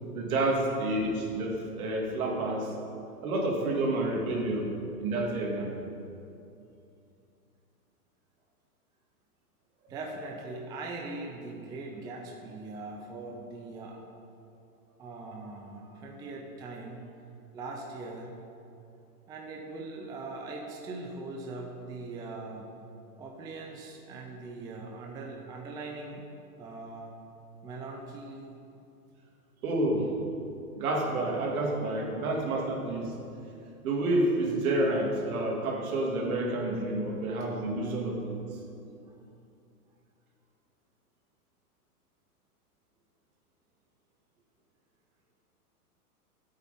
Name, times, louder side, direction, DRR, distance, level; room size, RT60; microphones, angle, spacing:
voice 1, 0.1-2.7 3.2-4.7 5.0-5.7 9.8-9.9 29.6-30.1 30.8-33.1 33.8-38.4, right 2 dB, 65° right, -1 dB, 2.7 m, -29 dB
voice 2, 9.9-14.0 15.0-17.1 17.5-18.3 19.3-22.7 23.2-26.2 26.6-27.2 27.6-28.5 37.9-38.0 39.0-39.2, right 3 dB, 10° right, 1 dB, 0.5 m, -41 dB
13.5 x 8.5 x 4.2 m, 2.6 s
hypercardioid pair, 130°, 46 cm